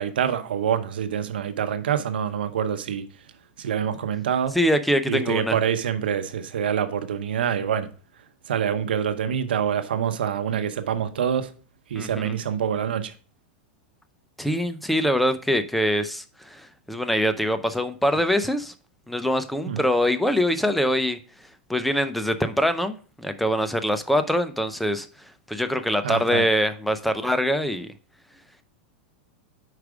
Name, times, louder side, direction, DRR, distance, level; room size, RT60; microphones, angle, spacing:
voice 1, 0.0-3.3 3.6-4.6 5.1-7.9 8.2-11.5 11.9-13.1 19.7-19.8 26.0-26.5, right 8 dB, 85° right, 0.8 m, -26 dB
voice 2, 4.5-5.6 12.0-12.3 14.4-18.7 19.1-21.2 21.7-25.1 25.5-27.9, equal, ahead, 0.5 m, -24 dB
4.9 x 4.7 x 4.9 m
hypercardioid pair, 125°, 5 cm